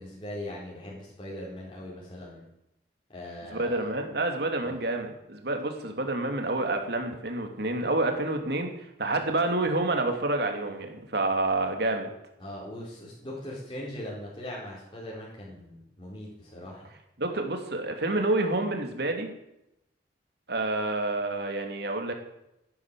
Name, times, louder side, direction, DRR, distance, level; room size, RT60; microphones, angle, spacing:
voice 1, 0.0-2.4 3.1-3.8 4.6-4.8 12.4-16.9, left 1 dB, 25° left, -6 dB, 4.3 m, -40 dB
voice 2, 3.5-8.7 9.0-12.1 17.2-19.3 20.5-22.1, right 2 dB, 60° right, 4 dB, 2.8 m, -28 dB
14.5 x 11.0 x 7.6 m, 0.86 s
head